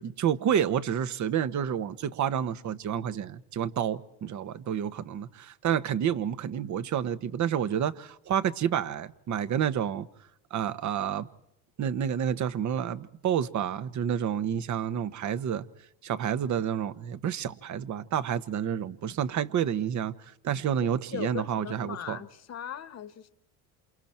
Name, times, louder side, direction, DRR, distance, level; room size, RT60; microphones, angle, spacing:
voice 1, 0.0-10.1 10.5-11.3 11.8-15.6 16.0-20.1 20.4-22.2, right 9 dB, 50° right, 1.3 m, -29 dB
voice 2, 21.1-23.3, left 9 dB, 40° left, 1.4 m, -39 dB
28.0 x 28.0 x 4.5 m
supercardioid pair, 95°, 38 cm